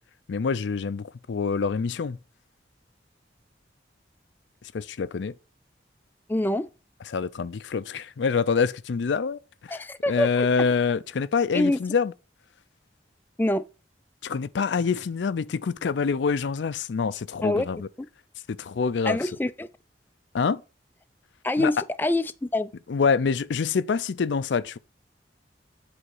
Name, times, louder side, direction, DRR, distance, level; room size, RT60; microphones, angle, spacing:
voice 1, 0.3-2.2 4.7-5.3 7.1-9.8 10.1-12.1 14.2-17.9 18.5-19.2 20.3-20.6 21.6-21.7 22.9-24.8, left 5 dB, 80° left, 0.4 m, -26 dB
voice 2, 6.3-6.7 9.7-10.5 11.5-11.8 13.4-13.7 17.4-17.7 18.0-18.1 19.0-19.7 21.4-22.7, left 1 dB, 10° left, 0.3 m, -25 dB
8.1 x 3.5 x 5.5 m
head